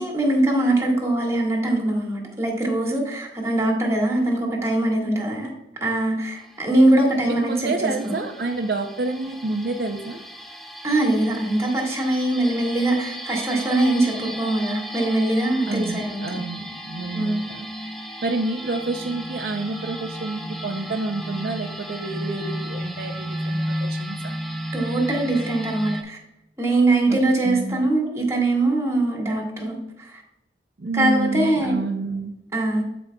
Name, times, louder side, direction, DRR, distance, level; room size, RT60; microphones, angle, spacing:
voice 1, 0.0-5.5 5.8-7.7 8.0-8.1 10.8-16.2 17.1-17.4 24.7-26.2 26.6-30.2 30.9-31.8 32.5-32.8, right 2 dB, 15° right, -1 dB, 1.7 m, -22 dB
sound 1, 6.4-26.0, equal, ahead, 0.7 m, -34 dB
voice 2, 7.3-10.2 15.7-17.7 18.2-24.4 27.1-27.2 27.4-27.8 30.8-32.3, right 2 dB, 60° right, 4 dB, 0.5 m, -28 dB
13.0 x 5.0 x 2.3 m, 0.89 s
head